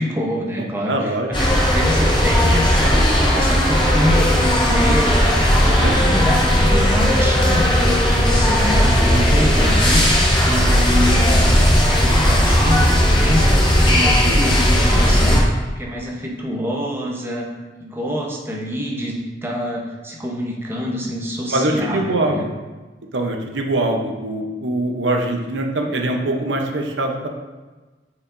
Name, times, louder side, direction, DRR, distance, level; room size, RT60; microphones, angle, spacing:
voice 1, 0.0-5.4 5.6-17.4 17.8-22.5, equal, 15° right, -1 dB, 0.9 m, -26 dB
voice 2, 0.9-1.6 5.8-6.1 14.2-14.4 21.5-22.5 23.1-27.3, right 2 dB, 80° right, 3 dB, 0.8 m, -23 dB
sound 1, 1.3-15.4, equal, 25° left, 1.2 m, -16 dB
8.4 x 4.9 x 2.6 m, 1.3 s
head